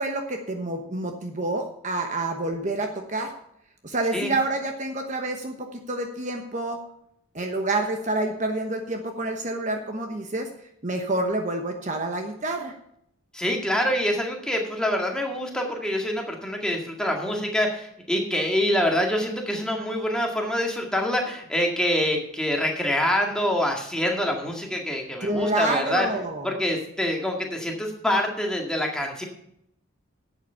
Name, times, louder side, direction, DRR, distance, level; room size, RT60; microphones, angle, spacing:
voice 1, 0.0-3.3 3.8-6.8 7.3-10.5 10.8-12.8 25.2-26.5, right 2 dB, 35° right, 5 dB, 1.0 m, -28 dB
voice 2, 13.3-26.1 26.4-29.2, left 1 dB, 5° left, 1 dB, 1.9 m, -25 dB
11.0 x 8.1 x 5.6 m, 0.73 s
head